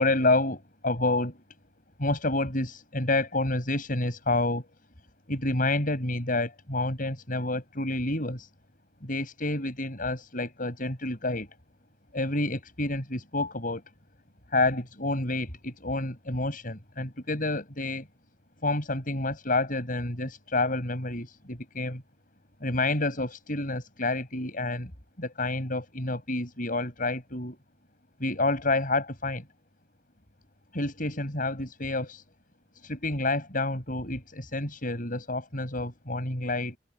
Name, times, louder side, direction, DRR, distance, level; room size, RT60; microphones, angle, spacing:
voice 1, 0.0-1.4 2.0-4.7 5.3-8.5 9.0-11.5 12.1-13.8 14.5-18.1 18.6-22.0 22.6-24.9 25.2-27.6 28.2-29.4 30.7-32.2 32.8-36.8, left 2 dB, 45° left, 6.8 m, -29 dB
head